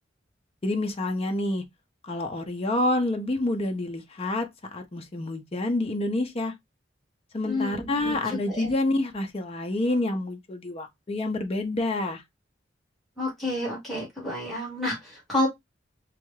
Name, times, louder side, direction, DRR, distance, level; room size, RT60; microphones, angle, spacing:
voice 1, 0.6-1.6 2.0-6.5 7.3-12.2, left 2 dB, 35° left, 0.6 m, -28 dB
voice 2, 7.4-8.7 13.2-15.5, left 1 dB, ahead, 1.7 m, -30 dB
3.4 x 2.3 x 3.1 m
head